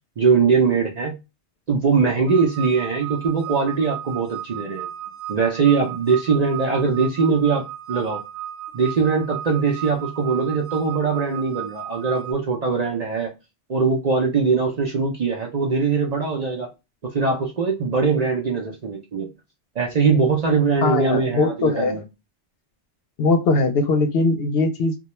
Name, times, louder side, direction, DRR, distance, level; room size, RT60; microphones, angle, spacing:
voice 1, 0.2-1.1 1.7-4.9 5.3-8.2 8.7-13.3 13.7-16.7 17.0-19.3 19.8-22.0, right 5 dB, 50° right, -1 dB, 0.5 m, -21 dB
sound 1, 2.3-12.3, right 12 dB, 75° right, 0.8 m, -35 dB
voice 2, 20.8-22.0 23.2-25.0, left 3 dB, 65° left, 7 dB, 0.7 m, -20 dB
2.3 x 2.1 x 2.9 m, 0.25 s
omnidirectional pair, 1.1 m